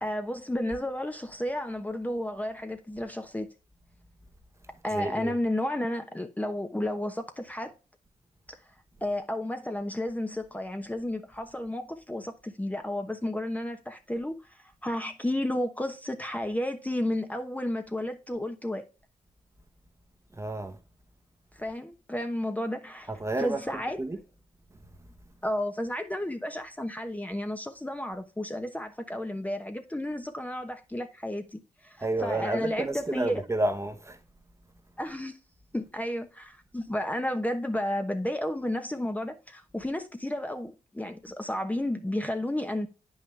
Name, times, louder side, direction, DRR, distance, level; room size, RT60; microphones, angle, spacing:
voice 1, 0.0-3.5 4.8-7.7 9.0-18.8 21.6-23.1 23.4-24.0 25.4-33.4 35.0-35.4 35.7-42.9, left 1 dB, 10° left, 1.0 m, -32 dB
voice 2, 4.9-5.4 20.3-20.8 23.1-23.6 24.0-24.2 32.0-34.2, right 2 dB, 20° right, 1.2 m, -30 dB
8.5 x 5.6 x 3.3 m
supercardioid pair, 55°, 14 cm